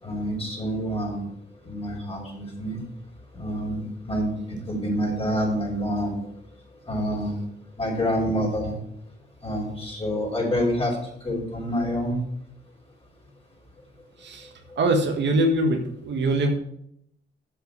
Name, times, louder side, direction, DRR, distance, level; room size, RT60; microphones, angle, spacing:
voice 1, 0.0-1.3 1.6-2.8 3.3-6.2 6.9-7.4 7.8-8.7 9.4-12.2, equal, 30° left, -2 dB, 5.1 m, -27 dB
voice 2, 14.8-16.5, right 1 dB, 70° right, 4 dB, 1.6 m, -23 dB
7.8 x 6.4 x 7.8 m, 0.73 s
cardioid pair, 75°, 19 cm